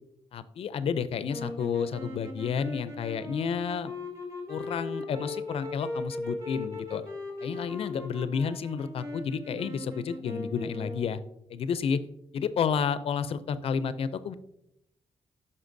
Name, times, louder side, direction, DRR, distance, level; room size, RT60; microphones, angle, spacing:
voice 1, 0.3-3.9 4.5-7.0 7.4-11.2 11.5-12.0 12.3-14.3, left 6 dB, 65° left, 13 dB, 0.4 m, -31 dB
sound 1, 1.2-11.2, left 2 dB, 30° right, 2.2 m, -38 dB
9.6 x 5.5 x 2.6 m, 0.81 s
cardioid pair, 105°, 11 cm